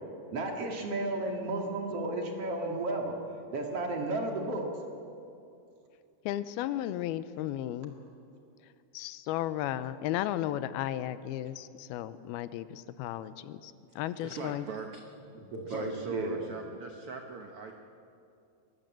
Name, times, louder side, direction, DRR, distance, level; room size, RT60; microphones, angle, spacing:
voice 1, 0.3-3.2 3.5-4.7 15.5-16.4, right 2 dB, 45° right, 1 dB, 2.8 m, -33 dB
voice 2, 6.3-7.9 8.9-14.7, left 12 dB, 90° left, 14 dB, 2.6 m, -34 dB
voice 3, 13.9-15.0 15.7-17.7, right 4 dB, 75° right, 3 dB, 1.2 m, -41 dB
22.5 x 19.0 x 7.6 m, 2.6 s
omnidirectional pair, 4.3 m